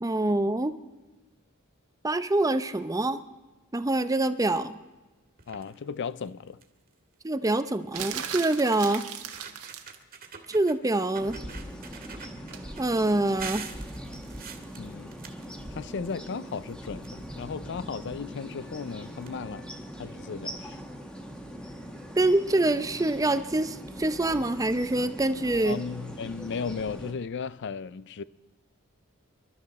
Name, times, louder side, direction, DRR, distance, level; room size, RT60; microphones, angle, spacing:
voice 1, 0.0-0.7 2.0-3.2 3.7-4.8 7.2-9.0 10.5-11.4 12.8-13.7 22.2-25.8, right 2 dB, 15° right, 0.6 m, -25 dB
sound 1, 5.4-5.7 6.2-6.3 6.6-6.9 8.1-8.2 8.8-8.9 9.2-10.8 11.1-12.8 13.4-16.2 16.5-17.6 18.5-18.6 18.9-19.0 19.2-19.3, right 6 dB, 40° right, 1.8 m, -44 dB
voice 2, 5.5-6.6 14.8-15.1 15.7-19.7 20.0-20.8 25.6-28.2, left 5 dB, 55° left, 0.4 m, -35 dB
sound 2, 7.9-10.0 12.5-12.7, right 8 dB, 85° right, 1.5 m, -37 dB
sound 3, 11.2-27.1, equal, 5° left, 1.5 m, -41 dB
27.5 x 12.5 x 4.2 m
head